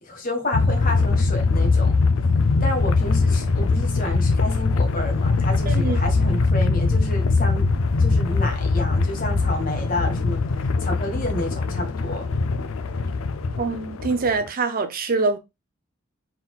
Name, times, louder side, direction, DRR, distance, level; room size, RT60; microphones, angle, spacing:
voice 1, 0.0-1.9 2.6-7.7 8.0-10.4 10.8-12.3, left 1 dB, 45° left, 1.5 m, -30 dB
sound 1, 0.5-14.5, left 3 dB, 85° left, 0.5 m, -21 dB
voice 2, 5.7-6.0 13.6-15.4, right 4 dB, 45° right, 0.6 m, -24 dB
4.2 x 3.9 x 2.4 m
head